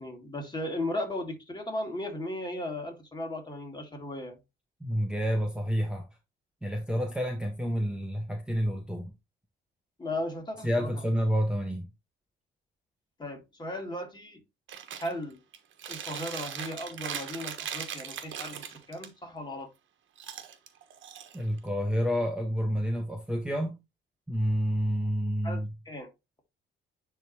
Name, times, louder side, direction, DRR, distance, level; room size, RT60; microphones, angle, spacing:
voice 1, 0.0-4.4 10.0-10.9 13.2-14.4 15.0-15.4 15.9-19.7 25.4-26.1, left 1 dB, 20° left, 3.0 m, -36 dB
voice 2, 4.8-6.1 6.6-9.1 10.6-11.9 21.3-23.8 24.3-25.7, equal, 5° right, 1.4 m, -29 dB
Chewing mastication, 14.7-15.1 15.5-19.1 20.2-21.7, right 8 dB, 75° right, 1.3 m, -39 dB
10.0 x 3.6 x 3.0 m
cardioid pair, 90°, 20 cm